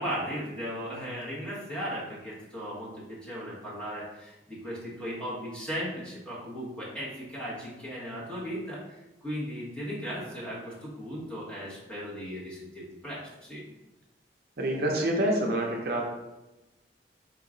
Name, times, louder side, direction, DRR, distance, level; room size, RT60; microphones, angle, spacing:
voice 1, 0.0-13.6, equal, 5° left, -8 dB, 1.4 m, -37 dB
voice 2, 14.6-16.0, right 1 dB, 60° right, 0 dB, 0.6 m, -27 dB
4.6 x 2.9 x 3.8 m, 1.0 s
head